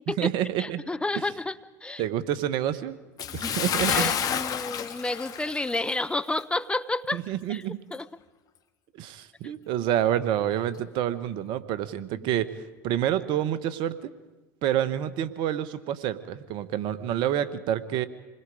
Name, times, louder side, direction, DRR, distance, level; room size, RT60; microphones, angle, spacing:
voice 1, 0.1-0.8 2.0-3.0 3.3-4.1 7.1-7.8 8.9-12.5 12.8-14.1 14.6-18.1, right 11 dB, 60° right, 14 dB, 1.3 m, -28 dB
voice 2, 0.6-2.0 3.4-3.5 3.9-7.2 7.5-7.6 7.9-8.1, left 2 dB, 10° left, 14 dB, 0.8 m, -30 dB
Bathtub (filling or washing) / Splash splatter, 3.2-6.1 6.4-6.6 7.1-7.2, left 8 dB, 45° left, 1.7 m, -29 dB
28.0 x 21.0 x 5.0 m, 1.2 s
hypercardioid pair, 80°, 9 cm